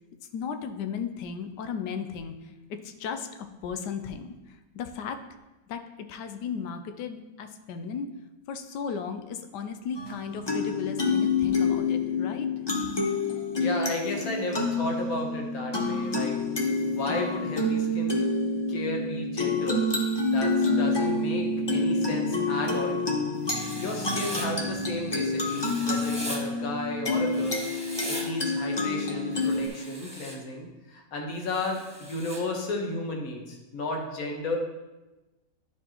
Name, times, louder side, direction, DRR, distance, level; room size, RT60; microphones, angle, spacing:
voice 1, 0.3-2.5 2.8-5.2 5.7-8.1 8.5-12.5, left 6 dB, 85° left, 8 dB, 1.2 m, -35 dB
sound 1, 9.9-29.7, left 2 dB, 40° left, 0.3 m, -28 dB
voice 2, 13.6-18.3 18.7-19.8 20.3-23.2 23.8-27.7 28.1-34.6, left 2 dB, 60° left, 1 dB, 1.4 m, -34 dB
Writing, 23.4-24.5 25.4-26.4 27.3-28.2 29.3-30.4 31.4-32.4, right 1 dB, 5° right, 0.9 m, -39 dB
10.5 x 4.6 x 2.9 m, 1.1 s
omnidirectional pair, 1.8 m